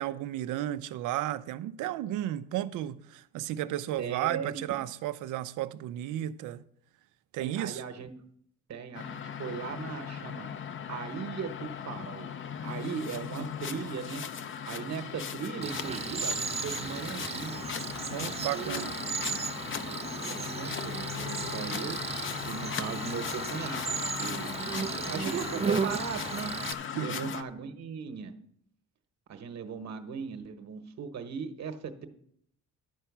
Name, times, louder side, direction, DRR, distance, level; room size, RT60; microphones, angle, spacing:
voice 1, 0.0-6.6 7.3-7.8 18.1-19.0 26.9-27.3, right 13 dB, 90° right, 0.5 m, -33 dB
voice 2, 4.0-4.5 7.4-8.1 8.7-10.5 10.9-12.3 12.6-14.2 14.7-17.6 18.2-19.1 19.9-22.0 22.5-24.6 24.9-26.5 27.0-28.3 29.3-32.1, right 6 dB, 60° right, 1.1 m, -38 dB
sound 1, 8.9-27.4, left 7 dB, 40° left, 0.6 m, -38 dB
Cricket, 15.6-26.7, right 6 dB, 20° right, 0.3 m, -35 dB
11.0 x 4.4 x 7.2 m
cardioid pair, 90°, 30 cm